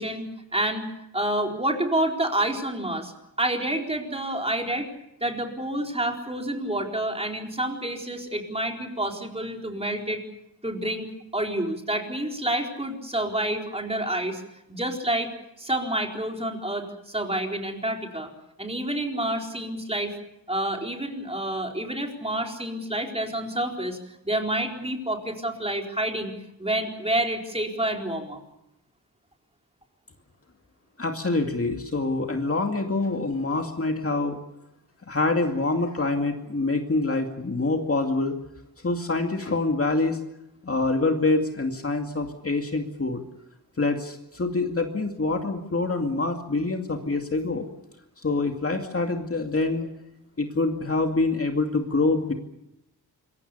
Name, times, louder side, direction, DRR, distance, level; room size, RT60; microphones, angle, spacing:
voice 1, 0.0-3.1 3.4-4.9 5.2-10.2 10.6-14.4 14.7-15.3 15.6-18.3 18.6-20.1 20.5-24.0 24.2-26.3 26.6-28.4, right 1 dB, 15° right, 2 dB, 4.3 m, -28 dB
voice 2, 31.0-34.4 35.1-38.3 38.8-40.2 40.6-43.2 43.8-47.7 48.2-49.9 50.4-52.3, left 3 dB, 35° left, 4 dB, 2.4 m, -25 dB
26.5 x 23.0 x 6.9 m, 0.86 s
wide cardioid pair, 120°, 39 cm